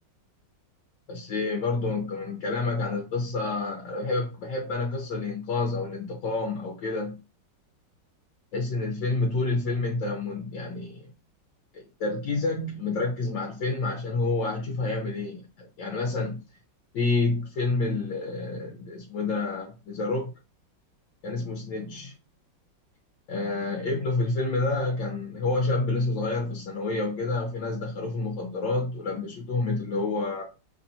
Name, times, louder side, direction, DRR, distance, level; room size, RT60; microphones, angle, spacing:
voice 1, 1.1-7.2 8.5-11.1 11.7-16.4 16.9-20.3 21.2-22.1 23.3-30.4, left 3 dB, 90° left, 1.7 m, -29 dB
4.0 x 2.8 x 2.7 m
omnidirectional pair, 1.9 m